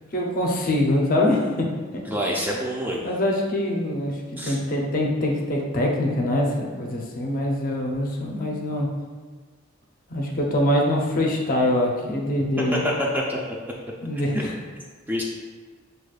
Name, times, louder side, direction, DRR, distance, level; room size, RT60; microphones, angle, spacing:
voice 1, 0.1-1.7 3.0-8.9 10.1-12.8 14.0-14.5, left 1 dB, 45° left, -1 dB, 0.6 m, -24 dB
voice 2, 2.1-3.0 4.4-4.6 12.7-13.4 14.3-14.4 15.1-15.2, equal, 10° right, -3 dB, 0.4 m, -26 dB
6.1 x 2.3 x 2.4 m, 1.5 s
head